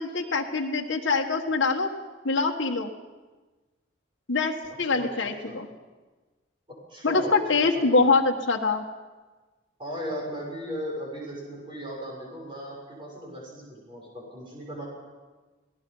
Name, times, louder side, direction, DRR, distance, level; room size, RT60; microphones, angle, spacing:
voice 1, 0.0-1.9 2.2-2.9 4.3-5.7 7.0-8.8, left 3 dB, 70° left, 0 dB, 1.5 m, -24 dB
voice 2, 6.7-7.4 8.0-8.1 9.8-14.8, equal, 25° right, -3 dB, 6.5 m, -37 dB
28.5 x 18.5 x 5.5 m, 1.3 s
head